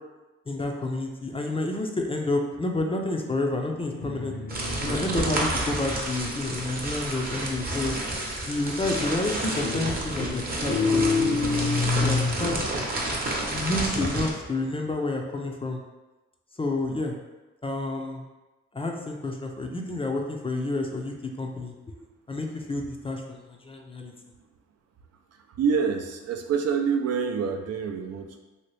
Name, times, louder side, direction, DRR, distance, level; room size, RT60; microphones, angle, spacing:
voice 1, 0.5-4.3 4.8-8.0 8.4-11.0 11.3-11.4 12.0-12.6 13.5-15.8 16.6-17.1 17.6-18.2 18.7-21.7 22.3-24.1, left 2 dB, 20° left, 2 dB, 0.5 m, -29 dB
Guitar, 3.8-7.4 8.9-9.3 9.6-12.5, left 4 dB, 80° left, 0.9 m, -28 dB
sound 1, 4.5-14.3, right 1 dB, 30° right, 0.8 m, -30 dB
voice 2, 25.5-28.4, right 6 dB, 60° right, 4 dB, 0.4 m, -26 dB
2.9 x 2.8 x 3.1 m, 1.1 s
cardioid pair, 75°, 29 cm